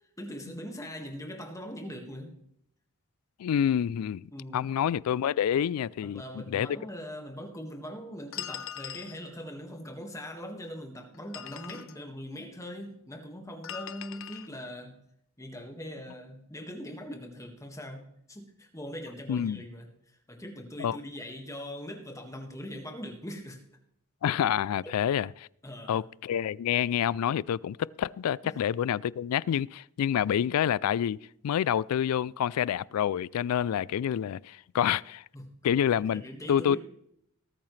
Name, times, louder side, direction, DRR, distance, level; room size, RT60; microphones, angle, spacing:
voice 1, 0.2-2.4 4.3-4.7 6.0-15.0 15.4-23.8 25.6-26.0 28.4-28.6 35.3-35.5 36.0-36.8, equal, 15° left, 1.7 m, -41 dB
voice 2, 3.4-6.7 19.3-19.6 20.8-21.0 24.2-25.5 25.9-31.2 31.4-35.2 35.6-36.2 36.5-36.8, left 9 dB, 80° left, 0.3 m, -28 dB
sound 1, 8.3-9.2 11.1-12.0 13.6-14.5, left 10 dB, 60° left, 0.7 m, -40 dB
19.5 x 8.7 x 3.2 m
head